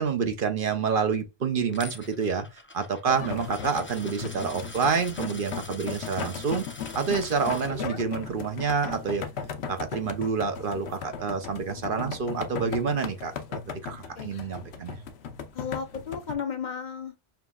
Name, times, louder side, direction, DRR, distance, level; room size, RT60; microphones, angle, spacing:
voice 1, 0.0-6.7 6.9-9.3 9.7-15.0, right 5 dB, 60° right, 0.9 m, -28 dB
Coin (dropping), 1.7-7.7, left 2 dB, 15° left, 0.5 m, -45 dB
sound 1, 3.1-16.4, left 6 dB, 80° left, 1.0 m, -37 dB
voice 2, 15.5-17.2, left 6 dB, 45° left, 0.9 m, -34 dB
5.7 x 3.0 x 2.3 m
omnidirectional pair, 1.1 m